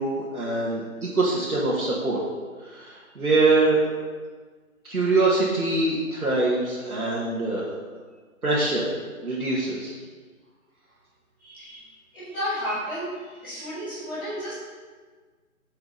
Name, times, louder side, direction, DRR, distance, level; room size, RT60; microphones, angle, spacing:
voice 1, 0.0-2.2 2.6-3.9 4.8-7.7 8.4-8.9 9.2-9.9, right 2 dB, 90° right, -8 dB, 2.3 m, -24 dB
voice 2, 11.4-11.8 12.1-13.1 13.4-14.5, equal, 5° left, -17 dB, 1.6 m, -32 dB
8.9 x 6.8 x 4.2 m, 1.4 s
figure-of-eight pair, 165°, 42 cm